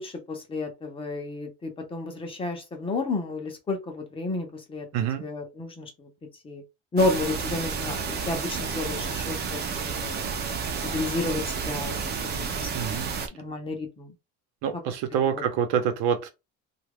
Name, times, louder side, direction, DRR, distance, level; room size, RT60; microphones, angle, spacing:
voice 1, 0.0-4.9 5.2-5.9 6.4-6.6 6.9-9.6 10.0-10.2 10.8-11.9 12.5-13.1 13.3-14.1, left 2 dB, 20° left, 0.7 m, -31 dB
voice 2, 4.9-5.2 12.7-13.1 14.6-16.3, right 8 dB, 70° right, 0.9 m, -26 dB
sound 1, 7.0-13.3, right 5 dB, 35° right, 0.6 m, -31 dB
2.9 x 2.4 x 3.4 m
cardioid pair, 155°, 29 cm